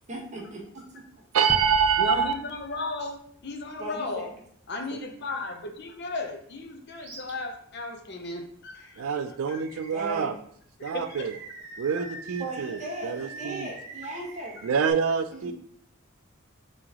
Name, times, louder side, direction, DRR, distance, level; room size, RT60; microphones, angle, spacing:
voice 1, 0.1-1.0 3.8-4.3 9.9-10.3 12.4-14.6 15.3-15.5, right 2 dB, 35° right, -2 dB, 1.2 m, -37 dB
voice 2, 1.3-2.3 4.9-5.0 9.0-10.4 10.8-11.3 11.8-13.7 14.6-15.5, right 7 dB, 90° right, 10 dB, 0.4 m, -26 dB
sound 1, 1.5-4.4, equal, 5° right, 0.3 m, -42 dB
voice 3, 2.0-4.3 4.7-9.2 9.5-9.6 10.8-11.3 12.0-12.1, left 2 dB, 55° left, 4 dB, 0.6 m, -35 dB
Animal, 7.0-7.3 7.8-7.9 9.5-10.3 10.9-14.9, right 3 dB, 70° right, 1.0 m, -45 dB
3.8 x 3.2 x 3.6 m, 0.65 s
head